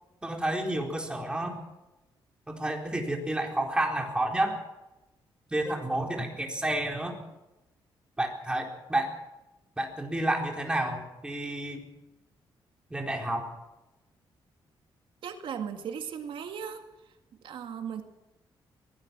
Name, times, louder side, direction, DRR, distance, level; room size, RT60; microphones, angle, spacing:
voice 1, 0.2-1.6 2.5-4.6 5.5-7.1 8.2-9.1 9.8-11.8 12.9-13.5, right 1 dB, 10° right, 1 dB, 4.2 m, -30 dB
voice 2, 15.2-16.8 17.4-18.0, right 7 dB, 75° right, 6 dB, 2.1 m, -36 dB
23.0 x 18.5 x 6.2 m, 0.98 s
cardioid pair, 135°, 9 cm